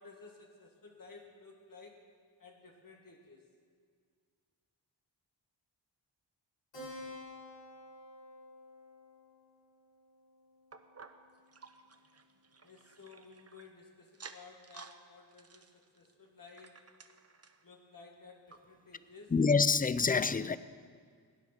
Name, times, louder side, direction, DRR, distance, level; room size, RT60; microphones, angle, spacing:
voice 1, 0.0-2.0 2.4-3.5 12.6-16.9 17.6-19.3, left 4 dB, 50° left, 2.0 m, -55 dB
Keyboard (musical), 6.7-11.7, left 1 dB, 80° left, 4.5 m, -51 dB
sound 1, 10.7-13.7 14.1-15.0 15.3-17.7 18.1-18.2 18.5-18.6 19.2-19.3, right 5 dB, 35° right, 0.8 m, -54 dB
voice 2, 19.3-20.6, left 4 dB, 20° left, 0.4 m, -27 dB
17.0 x 9.4 x 5.9 m
wide cardioid pair, 75°, 44 cm